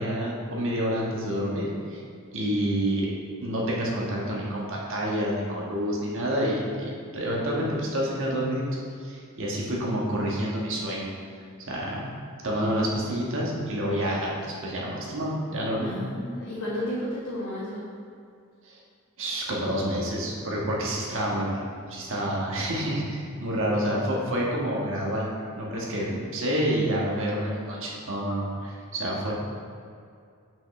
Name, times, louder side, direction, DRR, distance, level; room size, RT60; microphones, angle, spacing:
voice 1, 0.0-2.0 2.3-3.1 3.4-8.7 9.0-11.1 11.7-12.0 12.4-15.9 18.6-18.8 19.2-21.6 21.9-25.3 25.5-29.3, equal, 60° right, -4 dB, 1.4 m, -28 dB
voice 2, 15.8-17.9, left 1 dB, 80° left, -11 dB, 1.6 m, -32 dB
8.0 x 5.6 x 3.2 m, 2.3 s
head